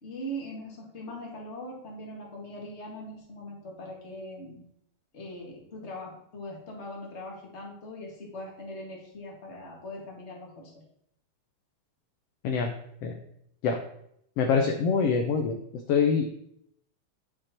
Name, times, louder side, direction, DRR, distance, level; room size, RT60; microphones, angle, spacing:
voice 1, 0.0-4.6 5.1-10.7, equal, 25° left, -2 dB, 1.9 m, -41 dB
voice 2, 14.4-15.6 15.9-16.2, left 5 dB, 70° left, 4 dB, 1.5 m, -24 dB
10.0 x 6.4 x 4.4 m, 0.73 s
omnidirectional pair, 3.7 m